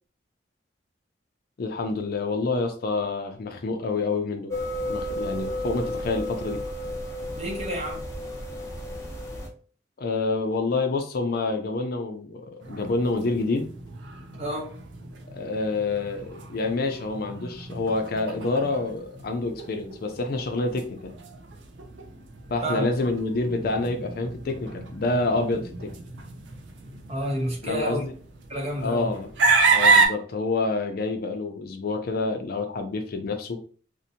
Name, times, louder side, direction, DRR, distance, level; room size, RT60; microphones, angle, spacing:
voice 1, 1.6-4.5 4.9-6.6 10.0-13.7 15.3-21.1 22.5-25.9 27.6-28.1 28.8-29.3 29.7-33.6, left 3 dB, 55° left, 0.4 m, -27 dB
sound 1, 4.5-9.5, equal, 15° left, 0.6 m, -32 dB
voice 2, 7.3-8.1 14.4-14.8 22.6-22.9 27.1-28.0 28.5-29.1, equal, 35° right, 0.7 m, -30 dB
sound 2, 12.6-30.1, right 4 dB, 75° right, 0.5 m, -29 dB
2.6 x 2.1 x 2.7 m
head